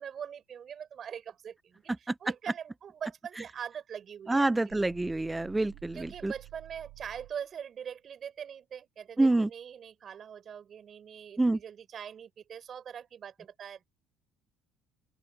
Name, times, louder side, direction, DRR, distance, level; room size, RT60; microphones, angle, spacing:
voice 1, 0.0-4.8 5.9-13.9, right 8 dB, 45° right, 4.2 m, -43 dB
voice 2, 4.3-6.3 9.2-9.5 11.4-11.6, right 2 dB, 10° right, 0.7 m, -27 dB
sound 1, 4.7-7.5, right 21 dB, 75° right, 7.2 m, -51 dB
open air
supercardioid pair, 85°, 0 cm